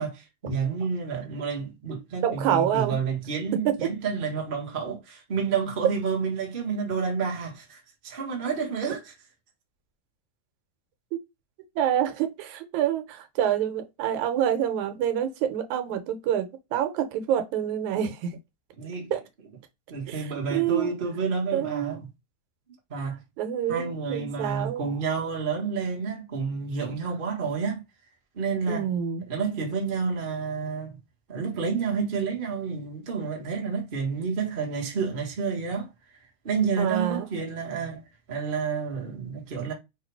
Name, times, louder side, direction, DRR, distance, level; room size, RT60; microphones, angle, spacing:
voice 1, 0.0-9.1 18.8-19.2 19.9-22.0 22.9-23.2 23.7-27.8 28.3-28.9 29.3-31.0 31.3-35.9 36.4-38.0 38.3-39.7, right 5 dB, 45° right, 0.6 m, -29 dB
voice 2, 2.2-2.9 11.8-18.4 19.1-19.2 20.1-20.9 21.5-22.0 23.4-24.9 28.7-29.2 36.8-37.3, right 10 dB, 85° right, 2.2 m, -27 dB
4.6 x 2.5 x 4.6 m
omnidirectional pair, 3.4 m